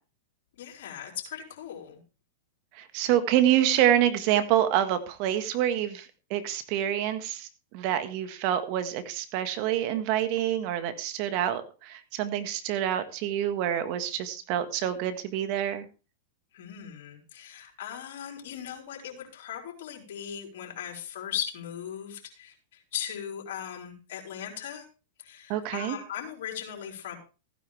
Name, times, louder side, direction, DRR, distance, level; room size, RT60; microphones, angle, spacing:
voice 1, 0.6-2.0 16.5-24.8 25.2-27.2, left 9 dB, 65° left, 1 dB, 4.5 m, -38 dB
voice 2, 2.7-7.5 7.7-15.9 25.5-26.0, right 11 dB, 50° right, 10 dB, 1.7 m, -27 dB
15.5 x 9.9 x 3.5 m, 0.34 s
hypercardioid pair, 110°, 0 cm